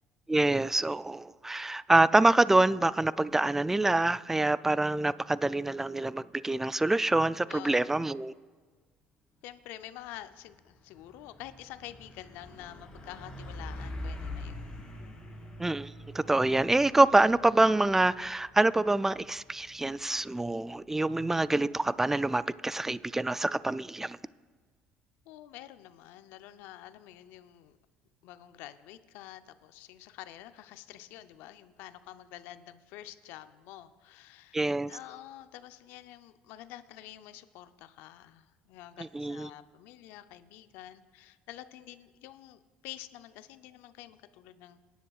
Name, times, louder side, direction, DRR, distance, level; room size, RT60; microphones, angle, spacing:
voice 1, 0.3-8.3 15.6-24.2 34.5-34.9 39.0-39.5, right 2 dB, 10° right, 17 dB, 0.3 m, -26 dB
voice 2, 7.5-7.9 9.4-14.8 25.3-27.8 28.2-44.8, left 13 dB, 75° left, 12 dB, 0.6 m, -48 dB
Truck, 10.0-10.1 10.5-23.1, left 1 dB, 25° left, 3.7 m, -46 dB
22.5 x 10.0 x 2.4 m, 1.5 s
supercardioid pair, 80°, 3 cm